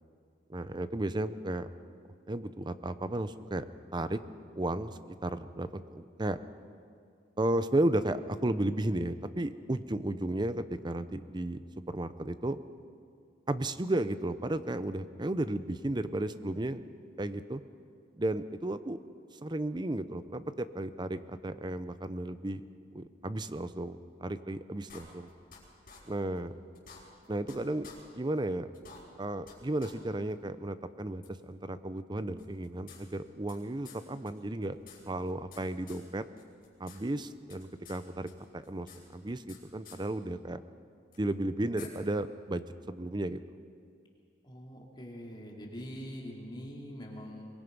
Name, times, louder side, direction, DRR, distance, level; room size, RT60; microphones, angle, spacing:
voice 1, 0.5-1.7 2.3-3.7 3.9-4.2 4.6-4.9 5.2-6.4 7.4-12.6 13.5-17.6 18.2-19.0 19.4-22.6 22.9-25.3 26.1-26.6 27.3-27.9 28.1-28.7 29.2-34.8 35.1-36.2 36.8-40.6 41.2-43.4, right 1 dB, 25° right, 12 dB, 0.6 m, -34 dB
sound 1, 24.9-25.6 25.9-26.0 26.4-26.5 26.7-27.6 27.8-28.0 28.4-28.5 28.7-29.5 29.8-29.9 30.3-30.4 31.2-31.3 32.4-33.6 33.8-34.0 34.3-34.4 34.6-35.6 35.9-36.0 36.4-37.0 37.2-38.0 38.3-39.6 39.8-40.0 41.1-41.2 41.8-41.9, left 6 dB, 50° left, 5.7 m, -51 dB
voice 2, 44.4-47.5, equal, 25° left, -2 dB, 2.9 m, -43 dB
23.5 x 22.0 x 5.4 m, 2.3 s
head